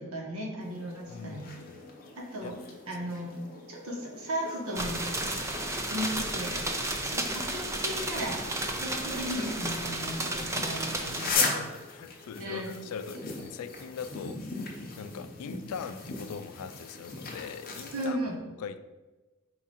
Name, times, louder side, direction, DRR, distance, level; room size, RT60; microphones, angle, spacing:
voice 1, 0.0-1.4 2.2-2.5 2.9-3.4 3.7-5.4 5.9-6.5 7.0-11.5 12.4-12.7 17.9-18.4, equal, 70° right, -1 dB, 1.0 m, -36 dB
sound 1, 0.6-18.1, left 4 dB, 40° left, 0.7 m, -39 dB
voice 2, 1.1-1.8 2.4-2.5 11.2-14.6 15.0-18.2 18.6-18.8, left 6 dB, 75° left, 11 dB, 0.3 m, -41 dB
sound 2, 4.7-11.3, right 1 dB, 15° right, 0.4 m, -33 dB
4.8 x 2.5 x 4.1 m, 1.2 s
head